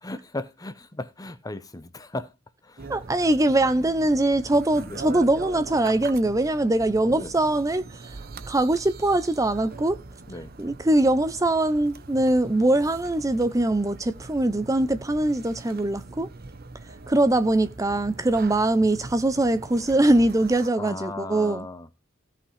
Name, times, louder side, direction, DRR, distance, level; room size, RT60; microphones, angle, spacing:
voice 1, 0.0-2.3 2.6-2.9 3.6-3.7 4.8-5.0 7.0-7.3 10.3-10.5 20.8-21.9, left 2 dB, 20° left, 0.8 m, -36 dB
sound 1, 2.8-20.7, right 3 dB, 50° right, 0.8 m, -41 dB
voice 2, 2.9-8.2 8.5-10.0 10.6-16.3 16.8-21.7, right 1 dB, 15° right, 0.6 m, -22 dB
16.5 x 5.7 x 3.3 m
head